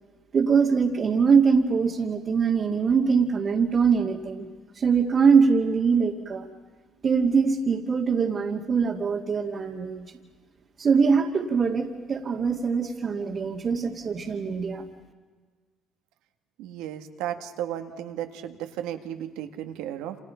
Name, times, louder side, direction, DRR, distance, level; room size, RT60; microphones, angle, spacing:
voice 1, 0.3-4.5 4.7-6.5 7.0-10.1 10.8-14.8, right 5 dB, 45° right, -2 dB, 2.2 m, -23 dB
voice 2, 16.6-20.2, right 11 dB, 85° right, 7 dB, 1.8 m, -34 dB
29.0 x 27.0 x 5.8 m, 1.4 s
supercardioid pair, 75°, 0 cm